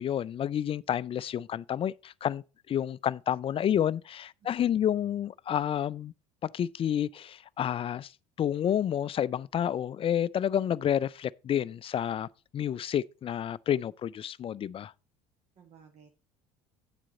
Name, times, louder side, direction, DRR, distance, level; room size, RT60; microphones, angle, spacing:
voice 1, 0.0-6.1 6.4-8.1 8.4-14.9, left 10 dB, 35° left, 0.4 m, -30 dB
voice 2, 4.4-4.8 15.6-16.1, right 7 dB, 45° right, 1.4 m, -57 dB
9.2 x 7.5 x 4.0 m
hypercardioid pair, 70°, 16 cm